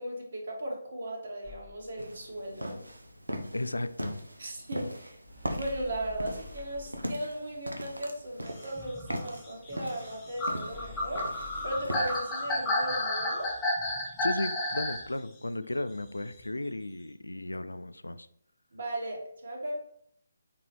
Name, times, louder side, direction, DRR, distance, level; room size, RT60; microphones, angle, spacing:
voice 1, 0.0-2.8 4.4-5.2 5.5-11.2 11.6-13.5 18.7-19.8, right 1 dB, 55° right, -1 dB, 1.3 m, -37 dB
sound 1, 1.4-2.0 5.3-7.3 10.7-11.8, left 3 dB, 20° right, 0.9 m, -47 dB
sound 2, 2.0-12.3, equal, 85° right, 0.7 m, -40 dB
voice 2, 3.5-4.2 14.2-18.3, left 1 dB, 80° left, 12 dB, 0.3 m, -34 dB
sound 3, 8.6-15.1 16.3-16.4, left 1 dB, 10° left, 0.7 m, -32 dB
3.9 x 3.7 x 3.1 m, 0.68 s
figure-of-eight pair, 145°, 0 cm